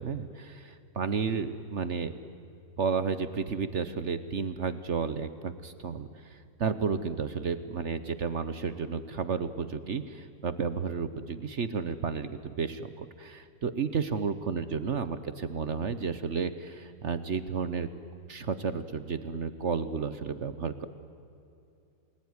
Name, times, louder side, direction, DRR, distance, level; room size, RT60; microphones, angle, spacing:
voice 1, 0.0-2.1 2.8-17.9 18.3-20.9, right 5 dB, 50° right, 12 dB, 1.1 m, -32 dB
28.5 x 20.0 x 9.7 m, 2.6 s
omnidirectional pair, 1.9 m